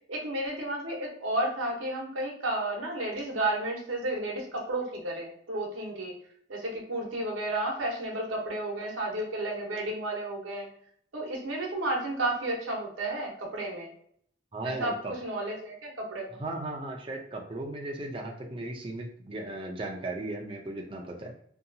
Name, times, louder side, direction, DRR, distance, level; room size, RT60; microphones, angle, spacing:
voice 1, 0.1-6.2 6.5-10.7 11.1-13.9 14.6-14.9 15.2-16.3, right 1 dB, 90° right, 0 dB, 0.8 m, -32 dB
voice 2, 14.5-15.1 16.4-21.3, right 2 dB, 25° right, 0 dB, 0.4 m, -36 dB
2.7 x 2.3 x 2.5 m, 0.63 s
head